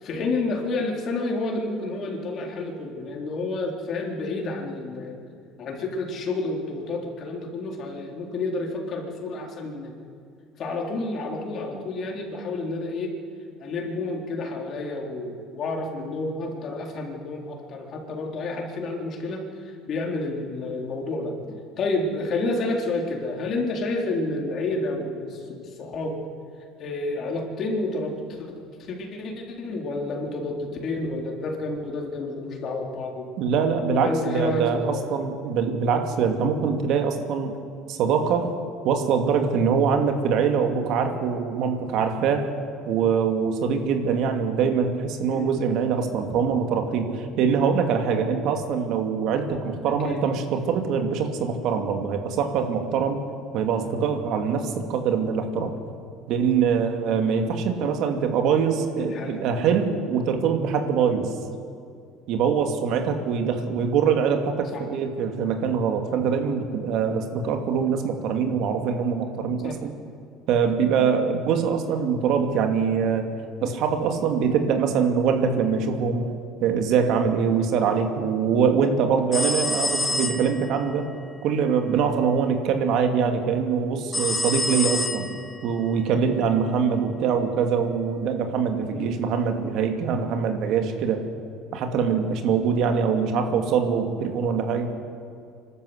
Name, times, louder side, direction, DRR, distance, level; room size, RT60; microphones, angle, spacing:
voice 1, 0.0-5.3 5.6-9.9 10.6-13.2 13.6-26.2 26.8-28.5 28.8-33.3 33.9-35.2 45.3-45.5 49.9-50.2 59.1-59.4 64.7-64.8 69.6-69.8 73.6-73.8 84.8-85.0 88.9-89.2, left 2 dB, 50° left, 1 dB, 4.0 m, -30 dB
voice 2, 33.4-37.5 37.9-38.5 38.8-42.5 42.8-53.2 53.5-55.7 56.3-61.3 62.3-69.9 70.5-73.2 73.6-76.3 76.6-81.1 81.4-85.3 85.6-91.2 91.7-94.9, right 6 dB, 65° right, 5 dB, 2.5 m, -23 dB
sound 1, 79.3-80.8 84.1-85.6, left 2 dB, 15° left, 1.6 m, -27 dB
25.0 x 13.0 x 8.2 m, 2.3 s
supercardioid pair, 95°, 0 cm